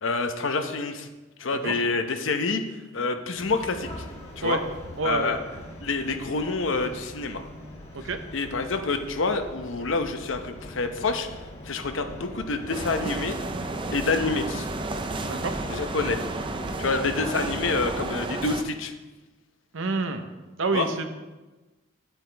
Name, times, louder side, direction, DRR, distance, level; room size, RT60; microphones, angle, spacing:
voice 1, 0.0-1.1 1.4-2.6 2.9-3.9 4.4-4.6 5.0-5.4 5.8-7.4 8.3-11.3 11.7-13.4 13.9-14.7 15.7-16.2 16.8-18.9 20.7-20.9, left 3 dB, 80° left, 7 dB, 0.8 m, -27 dB
sound 1, 3.4-18.1, equal, 35° left, 1.7 m, -41 dB
voice 2, 5.0-5.4 7.9-8.2 15.2-15.6 19.7-20.3 20.6-21.1, right 3 dB, 85° right, 8 dB, 0.8 m, -28 dB
sound 2, 12.7-18.6, right 2 dB, 25° right, 0.5 m, -32 dB
9.4 x 9.0 x 3.4 m, 1.2 s
head